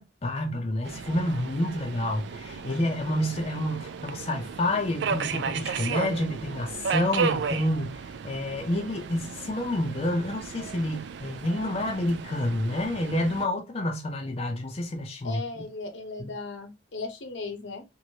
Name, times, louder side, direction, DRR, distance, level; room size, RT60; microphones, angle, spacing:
voice 1, 0.0-15.4 16.2-16.3, left 1 dB, 35° left, 0.5 m, -29 dB
Subway metro underground, 0.8-13.5, right 6 dB, 65° right, 0.3 m, -34 dB
voice 2, 15.2-17.8, left 3 dB, 75° left, 0.7 m, -37 dB
3.0 x 2.6 x 2.7 m
head